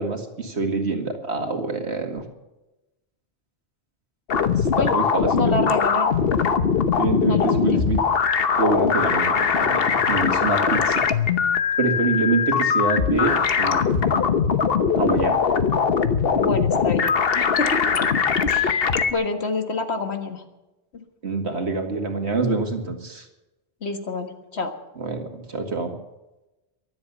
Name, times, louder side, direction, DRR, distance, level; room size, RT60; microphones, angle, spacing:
voice 1, 0.0-2.2 4.6-5.6 7.0-8.0 8.6-11.1 11.8-14.2 15.0-15.4 21.2-23.3 25.0-25.9, right 3 dB, 85° right, 4 dB, 2.4 m, -26 dB
sound 1, 4.3-19.1, left 6 dB, 65° left, 1.2 m, -21 dB
voice 2, 5.4-6.2 7.3-7.9 10.6-10.9 16.4-17.9 18.5-20.4 20.9-21.0 23.8-24.7, left 3 dB, 80° left, 6 dB, 1.9 m, -28 dB
23.5 x 8.1 x 6.9 m, 1.0 s
omnidirectional pair, 1.1 m